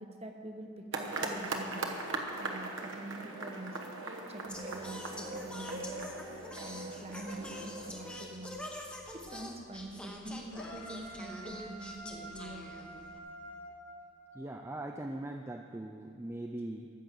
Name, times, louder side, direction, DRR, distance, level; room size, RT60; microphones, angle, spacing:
voice 1, 0.0-1.9 2.4-3.8 4.3-6.0 6.5-8.6 9.1-12.7, right 2 dB, 30° right, 3 dB, 1.0 m, -45 dB
sound 1, 0.9-8.2, right 2 dB, 70° right, 1.1 m, -40 dB
Singing, 4.5-13.2, left 1 dB, 5° left, 0.9 m, -45 dB
sound 2, 10.5-14.6, right 1 dB, 75° left, 2.1 m, -48 dB
voice 2, 14.3-16.9, right 1 dB, 10° right, 3 dB, 0.3 m, -41 dB
14.0 x 6.4 x 7.5 m, 2.5 s
head